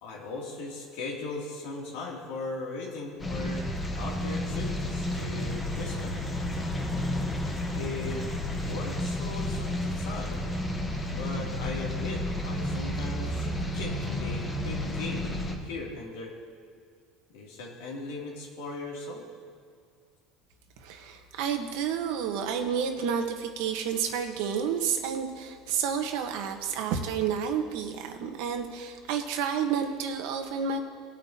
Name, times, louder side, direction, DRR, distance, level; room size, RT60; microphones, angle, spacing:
voice 1, 0.0-3.7 3.9-6.2 7.7-8.3 8.7-10.5 11.1-15.3 15.6-16.3 17.3-19.2, left 3 dB, 85° left, -2 dB, 2.9 m, -38 dB
sound 1, 3.2-15.6, left 1 dB, 15° left, 1.2 m, -31 dB
voice 2, 20.8-30.8, right 7 dB, 70° right, 5 dB, 1.3 m, -30 dB
20.0 x 8.6 x 2.9 m, 2.2 s
cardioid pair, 155°, 0 cm